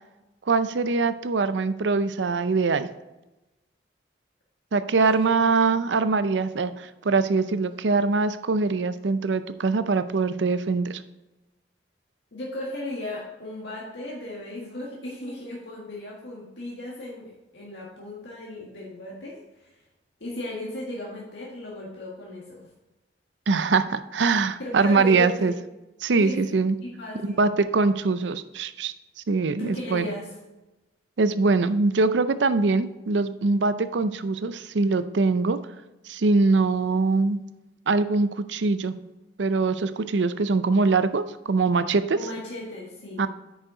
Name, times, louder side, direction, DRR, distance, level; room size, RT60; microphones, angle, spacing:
voice 1, 0.5-2.9 4.7-11.0 23.5-25.5 26.0-26.8 27.2-28.9 29.3-30.1 31.2-35.6 36.1-37.4 37.9-38.9 39.4-42.2 43.2-43.3, right 4 dB, 85° right, 12 dB, 0.5 m, -23 dB
voice 2, 5.0-5.8 12.3-19.7 20.2-22.7 24.2-25.6 26.2-26.5 26.8-27.5 29.6-30.3 42.1-43.3, left 1 dB, 80° left, -4 dB, 1.8 m, -36 dB
9.1 x 6.4 x 3.9 m, 1.0 s
head